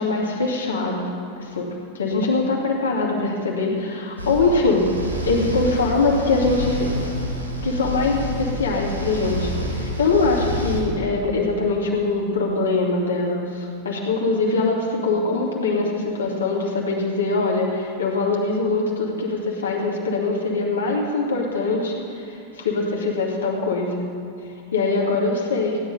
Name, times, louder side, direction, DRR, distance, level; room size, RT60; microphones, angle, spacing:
voice 1, 0.0-1.7 1.9-4.9 5.3-6.9 7.6-24.1 24.7-25.8, left 3 dB, 70° left, -2 dB, 2.5 m, -23 dB
sound 1, 4.2-10.8, equal, 90° right, 1.9 m, -28 dB
16.0 x 10.5 x 5.5 m, 2.6 s
figure-of-eight pair, 90°, 0 cm